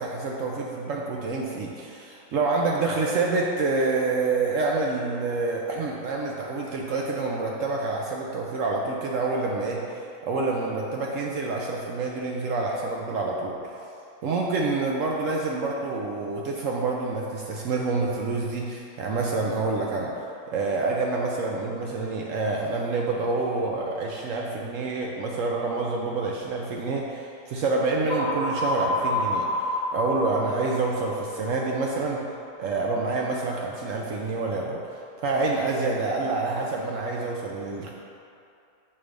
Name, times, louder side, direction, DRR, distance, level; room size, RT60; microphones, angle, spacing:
voice 1, 0.0-13.8 14.2-20.1 20.5-32.3 32.6-34.8 35.2-37.9, right 3 dB, 70° right, -1 dB, 0.7 m, -27 dB
sound 1, 28.1-32.0, left 1 dB, 55° left, 0.9 m, -29 dB
5.9 x 3.2 x 5.1 m, 2.6 s
omnidirectional pair, 1.8 m